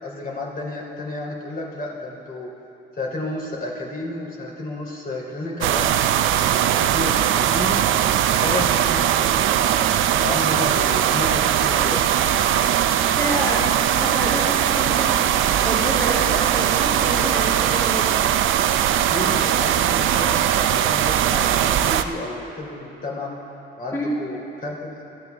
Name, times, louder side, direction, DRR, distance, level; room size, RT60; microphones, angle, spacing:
voice 1, 0.0-2.5 3.0-5.9 6.5-7.8 8.4-9.6 10.2-12.1 19.1-23.3 23.8-24.9, left 2 dB, 45° left, -2 dB, 3.3 m, -31 dB
sound 1, 5.6-22.0, right 10 dB, 80° right, 0.6 m, -20 dB
voice 2, 13.2-15.3 15.6-18.2 23.9-24.1, equal, 15° left, -5 dB, 2.1 m, -28 dB
21.5 x 12.5 x 3.5 m, 2.7 s
cardioid pair, 90°, 20 cm